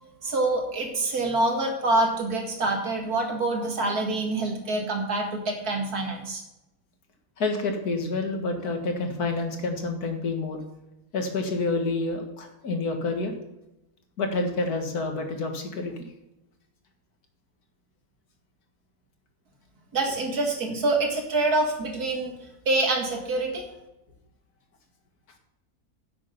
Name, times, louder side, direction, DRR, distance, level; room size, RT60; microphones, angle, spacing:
voice 1, 0.0-6.4 19.9-22.4 22.7-23.7, right 2 dB, 80° right, 3 dB, 2.5 m, -26 dB
voice 2, 7.4-10.6 11.1-13.3 14.2-15.9, left 3 dB, 85° left, 4 dB, 2.2 m, -28 dB
10.5 x 7.6 x 5.6 m, 0.92 s
omnidirectional pair, 1.6 m